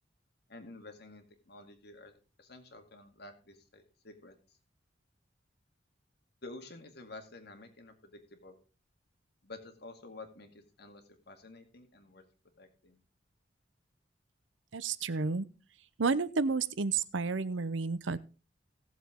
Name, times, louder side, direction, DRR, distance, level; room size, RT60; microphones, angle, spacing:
voice 1, 0.5-4.6 6.4-8.6 9.4-12.2 12.6-13.0, left 2 dB, 60° left, 6 dB, 2.2 m, -51 dB
voice 2, 14.7-15.5 16.0-18.2, right 4 dB, 90° right, 17 dB, 0.7 m, -31 dB
17.5 x 7.3 x 3.7 m, 0.34 s
head